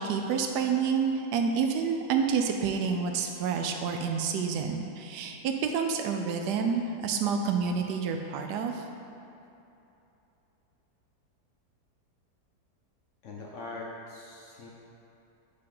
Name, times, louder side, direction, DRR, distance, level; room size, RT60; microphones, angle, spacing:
voice 1, 0.0-8.8, right 6 dB, 80° right, 4 dB, 1.1 m, -28 dB
voice 2, 13.2-14.7, left 3 dB, 65° left, -3 dB, 0.8 m, -42 dB
5.2 x 4.3 x 5.4 m, 2.9 s
omnidirectional pair, 1.8 m